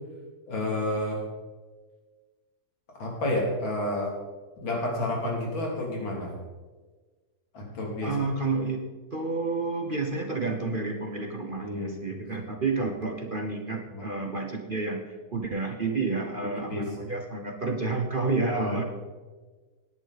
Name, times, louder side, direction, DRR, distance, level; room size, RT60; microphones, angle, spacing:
voice 1, 0.5-1.2 3.0-4.1 4.6-6.3 7.5-8.1 11.6-12.2 13.9-14.1 16.7-16.9 18.4-18.8, left 1 dB, 90° left, -1 dB, 3.8 m, -30 dB
voice 2, 8.0-8.8 9.1-18.8, right 3 dB, 35° right, 3 dB, 0.9 m, -30 dB
18.0 x 10.0 x 4.2 m, 1.3 s
omnidirectional pair, 2.0 m